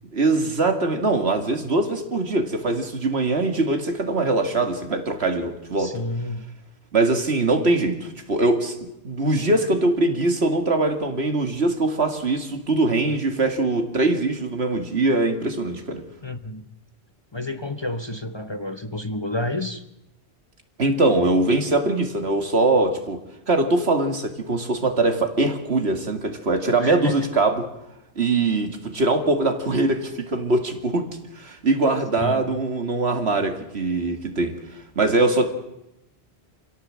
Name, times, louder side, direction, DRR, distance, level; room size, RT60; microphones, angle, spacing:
voice 1, 0.1-6.0 6.9-8.8 9.0-16.0 20.8-23.2 23.5-27.7 28.2-31.1 31.3-34.5 35.0-35.5, right 2 dB, 75° right, 6 dB, 2.5 m, -22 dB
voice 2, 5.8-6.4 16.2-16.7 17.3-19.8 26.8-27.1 32.2-32.4, left 2 dB, 25° left, 8 dB, 1.0 m, -29 dB
27.5 x 16.5 x 7.6 m, 0.90 s
omnidirectional pair, 1.1 m